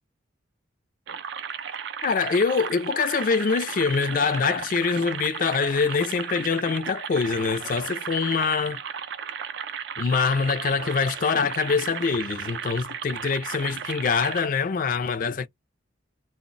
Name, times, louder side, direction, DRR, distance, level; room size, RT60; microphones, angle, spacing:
sound 1, 1.1-14.5, right 7 dB, 60° right, 0.4 m, -35 dB
voice 1, 2.0-8.8 10.0-15.5, left 5 dB, 40° left, 0.3 m, -24 dB
2.1 x 2.0 x 3.7 m
head